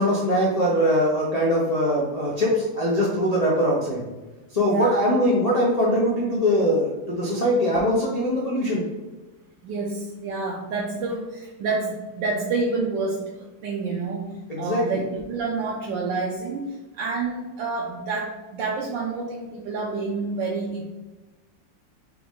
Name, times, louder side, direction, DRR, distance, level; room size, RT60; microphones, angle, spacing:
voice 1, 0.0-4.0 4.5-8.8 14.5-15.0, equal, 85° left, -6 dB, 0.3 m, -22 dB
voice 2, 4.6-5.0 7.9-8.0 9.6-20.9, right 3 dB, 75° right, -3 dB, 1.3 m, -28 dB
4.8 x 3.0 x 3.6 m, 1.2 s
omnidirectional pair, 2.1 m